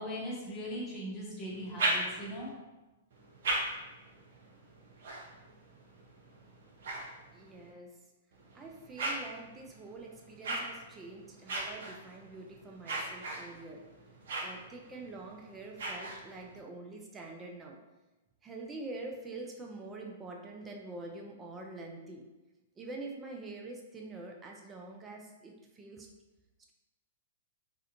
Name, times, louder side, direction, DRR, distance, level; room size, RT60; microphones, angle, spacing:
voice 1, 0.0-2.5, equal, 25° left, -5 dB, 0.8 m, -39 dB
sound 1, 1.5-2.5 3.1-7.7 8.3-16.6, right 2 dB, 65° right, 0.6 m, -39 dB
voice 2, 7.3-7.9 8.5-13.8 14.4-17.8 18.4-22.2 22.8-26.1, right 2 dB, 20° right, 0 dB, 0.4 m, -45 dB
2.4 x 2.1 x 2.7 m, 1.1 s
hypercardioid pair, 110°, 0 cm